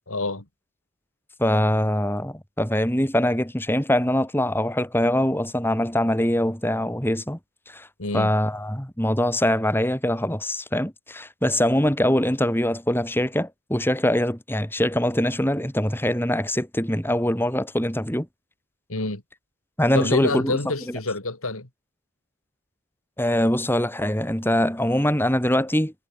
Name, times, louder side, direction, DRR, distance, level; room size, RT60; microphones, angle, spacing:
voice 1, 0.1-0.4 8.0-8.3 18.9-19.2 19.9-21.7, left 2 dB, 70° left, 3.5 m, -27 dB
voice 2, 1.4-7.4 7.7-7.9 8.1-18.3 19.8-20.6 23.2-25.9, left 1 dB, 10° left, 4.1 m, -23 dB
head